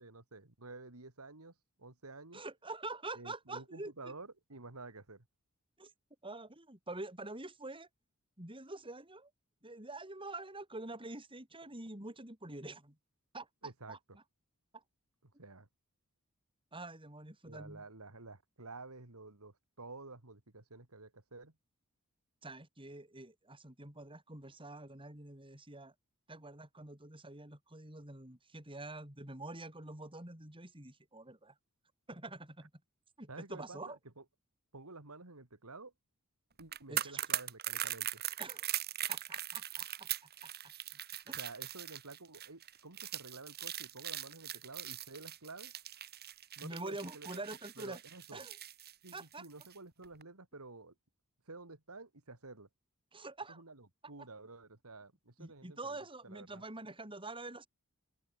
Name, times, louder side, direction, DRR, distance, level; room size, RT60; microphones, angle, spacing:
voice 1, 0.0-1.5 1.8-2.4 3.2-5.2 13.6-14.0 15.4-15.7 17.5-21.5 33.3-34.2 34.7-35.9 36.6-38.2 41.3-45.7 46.6-47.4 47.8-48.4 49.0-50.9 51.5-52.7 53.5-56.0 56.2-56.6, right 3 dB, 90° right, 2.7 m, -51 dB
voice 2, 2.3-4.1 5.8-5.9 6.2-7.9 8.4-9.3 9.6-13.0 13.3-13.5 13.9-14.2 14.7-14.8 16.7-17.8 22.4-25.9 26.3-31.5 32.1-32.7 33.2-34.0 36.9-37.2 38.4-38.7 39.1-40.1 40.4-40.5 41.3-41.4 46.6-48.0 48.3-48.6 49.1-49.5 53.1-53.6 54.2-54.3 55.4-57.7, right 2 dB, 25° right, 5.5 m, -46 dB
sound 1, 36.6-49.7 50.0-50.2, right 11 dB, 50° right, 5.6 m, -40 dB
open air
head